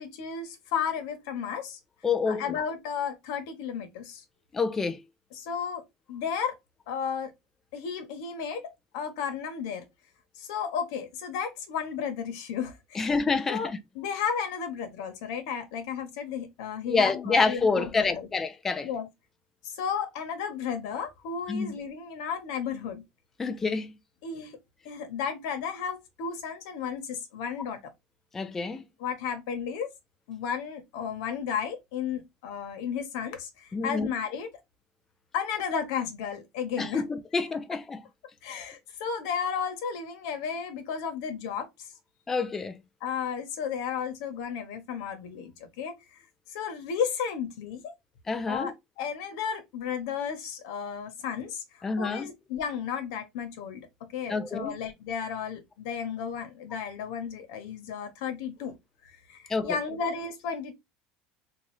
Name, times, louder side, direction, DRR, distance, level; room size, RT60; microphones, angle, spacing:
voice 1, 0.0-1.8 2.3-4.2 5.3-5.8 6.1-6.5 6.9-7.3 7.7-9.8 10.4-13.2 13.5-13.7 13.9-18.3 18.8-19.1 19.6-23.0 24.2-24.6 24.8-27.8 29.0-29.9 30.3-34.5 35.3-37.0 38.4-41.9 43.0-46.2 46.5-47.9 48.5-58.7 59.0-60.7, left 7 dB, 80° left, 1.2 m, -33 dB
voice 2, 2.0-2.6 4.5-5.0 13.0-13.8 16.9-18.9 21.5-21.7 23.4-23.9 28.3-28.8 33.7-34.1 36.8-38.0 42.3-42.8 48.3-48.7 51.8-52.3 54.3-54.8 59.5-59.8, left 4 dB, 15° left, 0.4 m, -27 dB
3.9 x 2.5 x 3.1 m
cardioid pair, 165°, 2 cm